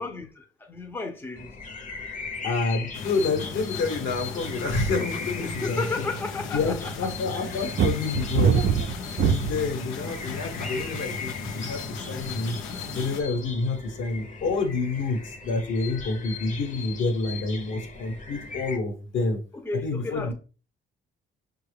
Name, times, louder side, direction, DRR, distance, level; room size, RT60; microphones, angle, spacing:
voice 1, 0.0-1.5 5.4-7.1 7.3-7.5 19.5-20.3, left 3 dB, 10° left, 0.6 m, -33 dB
sound 1, 1.4-18.8, left 4 dB, 40° left, 0.9 m, -39 dB
voice 2, 2.4-6.1 6.5-8.6 9.2-12.6 12.9-19.4 19.8-20.3, left 3 dB, 70° left, 1.2 m, -28 dB
sound 2, 2.9-13.2, left 4 dB, 90° left, 0.6 m, -36 dB
sound 3, 7.8-9.7 10.4-10.8, right 7 dB, 55° right, 0.4 m, -22 dB
5.5 x 2.3 x 3.3 m
cardioid pair, 90°, 20 cm